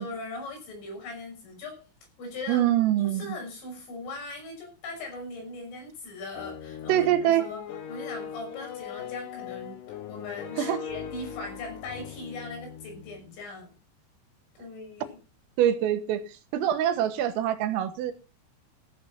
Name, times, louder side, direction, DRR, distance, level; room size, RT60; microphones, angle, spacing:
voice 1, 0.0-1.8 2.2-2.7 3.0-7.1 7.4-7.6 7.9-13.7 14.6-15.2, left 2 dB, 70° left, 8.6 m, -39 dB
voice 2, 2.5-3.4 6.9-7.5 10.6-10.8 15.6-18.1, right 11 dB, 80° right, 3.9 m, -25 dB
sound 1, 6.3-13.3, left 8 dB, 90° left, 1.8 m, -40 dB
15.5 x 8.8 x 5.7 m
omnidirectional pair, 5.9 m